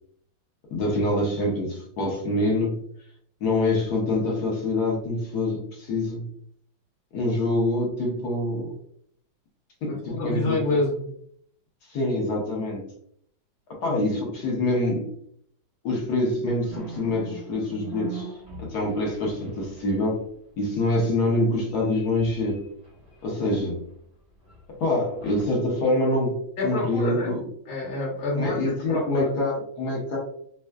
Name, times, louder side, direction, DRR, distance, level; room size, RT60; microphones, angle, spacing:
voice 1, 0.7-2.8 3.4-6.3 7.1-8.7 9.8-10.6 11.9-12.8 13.8-15.0 15.8-18.3 18.6-20.2 20.6-22.6 23.2-23.8 24.7-27.4 28.3-30.2, left 2 dB, 60° left, -2 dB, 1.3 m, -25 dB
voice 2, 9.9-11.1 26.6-27.4 27.7-28.5 28.9-29.3, left 2 dB, 80° left, -4 dB, 1.6 m, -27 dB
sound 1, 16.7-20.3 21.6-23.9 24.4-24.6 25.2-25.4, right 4 dB, 25° right, 0.8 m, -42 dB
3.6 x 2.2 x 2.2 m, 0.65 s
omnidirectional pair, 2.1 m